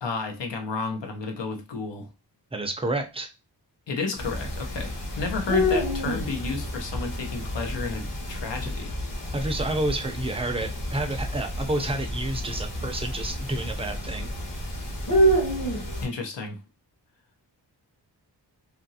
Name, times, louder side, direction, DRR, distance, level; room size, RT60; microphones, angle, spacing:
voice 1, 0.0-2.1 3.9-8.9 16.0-16.6, left 4 dB, 85° left, 0.8 m, -32 dB
voice 2, 2.5-3.3 9.3-14.3, right 2 dB, 15° right, 0.5 m, -29 dB
sound 1, 4.2-16.1, equal, 50° left, 1.0 m, -29 dB
2.8 x 2.6 x 2.7 m
wide cardioid pair, 90°, 42 cm